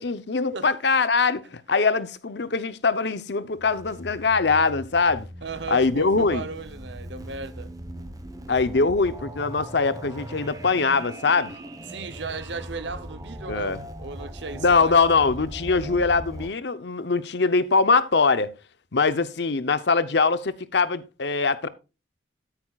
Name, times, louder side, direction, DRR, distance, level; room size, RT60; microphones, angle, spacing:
voice 1, 0.0-1.4 1.7-5.3 5.7-6.4 8.5-11.5 13.5-13.8 14.6-18.5 18.9-21.7, left 4 dB, 65° left, 0.8 m, -22 dB
sound 1, 3.6-16.5, right 1 dB, 20° right, 1.0 m, -39 dB
voice 2, 5.4-7.7 11.9-15.0, right 4 dB, 70° right, 0.8 m, -36 dB
13.0 x 8.7 x 2.4 m
head